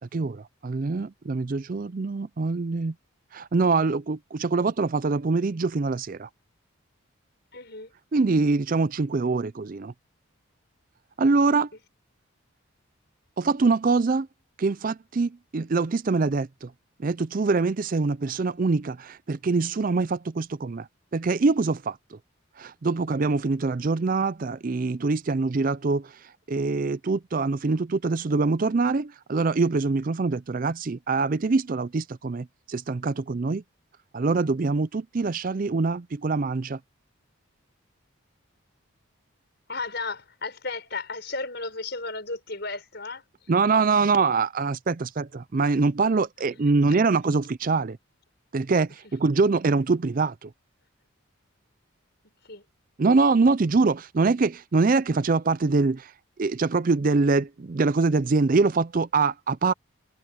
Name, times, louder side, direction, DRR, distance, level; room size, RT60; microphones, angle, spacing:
voice 1, 0.1-2.9 3.3-6.3 8.1-9.9 11.2-11.7 13.4-14.3 14.6-16.7 17.0-20.9 21.1-22.2 22.6-26.2 26.5-33.6 34.1-36.8 43.5-48.0 48.5-50.5 53.0-56.1 56.4-59.7, right 4 dB, 40° right, 0.4 m, -24 dB
voice 2, 7.5-7.9 11.7-11.8 39.7-43.5 46.4-46.6 49.0-49.1 52.2-52.7, left 3 dB, 50° left, 6.7 m, -35 dB
head